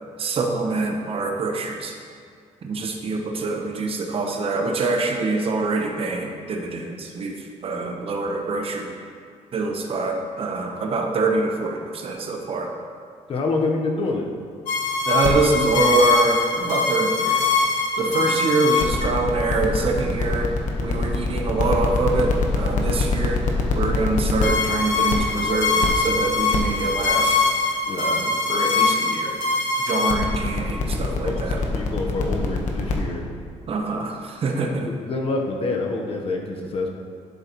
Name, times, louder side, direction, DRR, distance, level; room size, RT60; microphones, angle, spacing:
voice 1, 0.2-2.0 2.6-8.9 9.5-12.7 15.0-17.5 18.0-20.5 20.8-23.4 23.7-27.5 27.9-29.4 29.8-31.6 33.7-34.9, right 3 dB, 50° right, 3 dB, 0.9 m, -25 dB
voice 2, 13.3-14.3 18.0-18.3 27.9-28.3 30.1-30.2 30.9-33.3 34.7-36.9, left 3 dB, 50° left, 1 dB, 1.0 m, -27 dB
sound 1, 14.7-32.9, left 4 dB, 80° left, 1.1 m, -22 dB
10.5 x 7.7 x 3.0 m, 2.1 s
cardioid pair, 130°, 13 cm